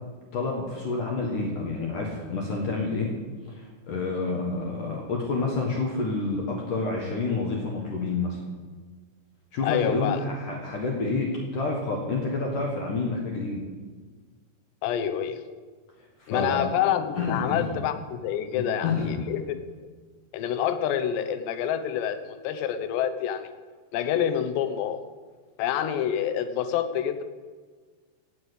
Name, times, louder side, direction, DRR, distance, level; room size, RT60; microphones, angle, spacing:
voice 1, 0.3-3.1 3.5-8.4 9.5-13.6 16.2-16.7 17.1-17.7 18.5-19.3, left 3 dB, 60° left, -1 dB, 2.5 m, -29 dB
voice 2, 9.6-10.2 14.8-15.4 16.3-19.6 20.3-23.5 23.9-25.0 25.6-27.2, left 9 dB, 75° left, 10 dB, 2.9 m, -27 dB
17.0 x 7.4 x 8.1 m, 1.5 s
omnidirectional pair, 5.4 m